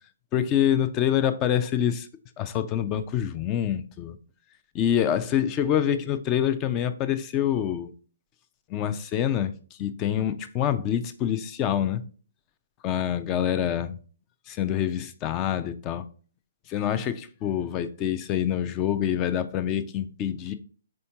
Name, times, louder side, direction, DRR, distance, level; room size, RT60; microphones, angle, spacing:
voice 1, 0.3-2.1 2.4-4.2 4.7-7.9 8.7-9.5 9.8-12.0 12.8-13.9 14.5-16.1 16.7-20.5, left 10 dB, 25° left, 0.4 m, -26 dB
4.3 x 3.5 x 2.7 m
figure-of-eight pair, 130°, 0 cm